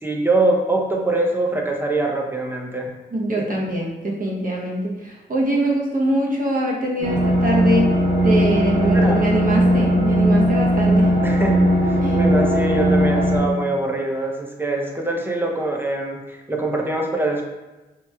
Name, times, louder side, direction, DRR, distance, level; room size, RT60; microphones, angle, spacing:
voice 1, 0.0-2.9 3.5-3.6 8.9-9.3 11.2-17.4, right 2 dB, 10° right, 0 dB, 0.6 m, -23 dB
voice 2, 3.1-11.1 12.0-12.2, right 1 dB, 45° right, -2 dB, 0.8 m, -23 dB
sound 1, 7.0-13.4, equal, 85° right, 1.2 m, -18 dB
3.0 x 3.0 x 2.3 m, 1.1 s
supercardioid pair, 45°, 20 cm